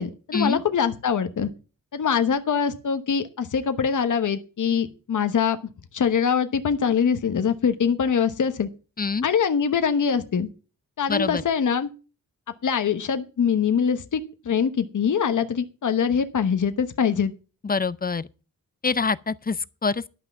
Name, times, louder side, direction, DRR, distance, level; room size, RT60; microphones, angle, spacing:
voice 1, 0.0-1.5 1.9-5.6 5.9-8.7 9.2-10.5 11.0-11.9 12.6-17.3, left 7 dB, 60° left, 1.1 m, -23 dB
voice 2, 9.0-9.3 11.1-11.4 17.6-18.3 18.8-20.0, left 4 dB, 25° left, 0.5 m, -25 dB
11.5 x 5.8 x 7.0 m
wide cardioid pair, 90°, 34 cm